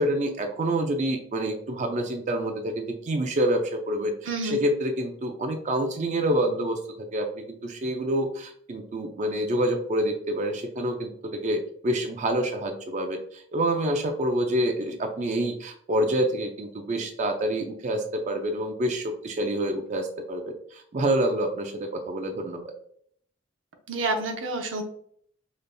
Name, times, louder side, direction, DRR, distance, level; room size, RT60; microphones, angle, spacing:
voice 1, 0.0-6.8 7.1-20.4 20.7-22.6, right 1 dB, 40° right, 4 dB, 0.4 m, -27 dB
voice 2, 4.3-4.6 23.9-24.8, right 2 dB, 90° right, 4 dB, 0.7 m, -28 dB
5.1 x 2.6 x 2.2 m, 0.63 s
head